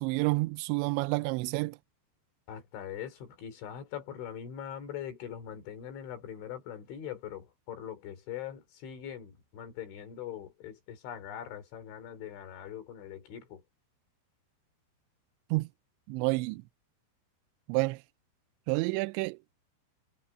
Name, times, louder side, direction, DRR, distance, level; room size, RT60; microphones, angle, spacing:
voice 1, 0.0-1.8 15.5-15.7 16.1-16.6 17.7-18.0 18.7-19.4, right 24 dB, 85° right, 2.8 m, -29 dB
voice 2, 2.5-13.6, left 9 dB, 85° left, 6.0 m, -42 dB
omnidirectional pair, 5.3 m